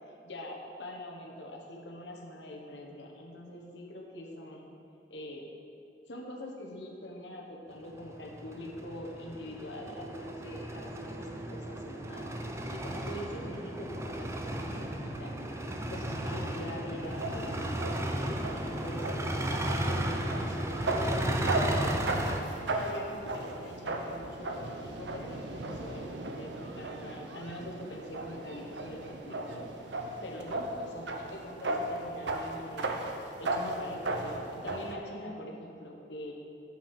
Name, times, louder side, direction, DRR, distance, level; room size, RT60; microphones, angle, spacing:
voice 1, 0.1-4.7 5.1-5.4 6.1-15.4 15.9-18.4 18.8-22.0 22.7-33.0 33.4-36.3, left 1 dB, 80° left, 0 dB, 1.3 m, -44 dB
sound 1, 7.9-22.4, right 1 dB, 15° right, 0.6 m, -34 dB
sound 2, 17.0-34.9, right 2 dB, 85° right, 0.8 m, -36 dB
7.8 x 6.0 x 6.5 m, 2.7 s
head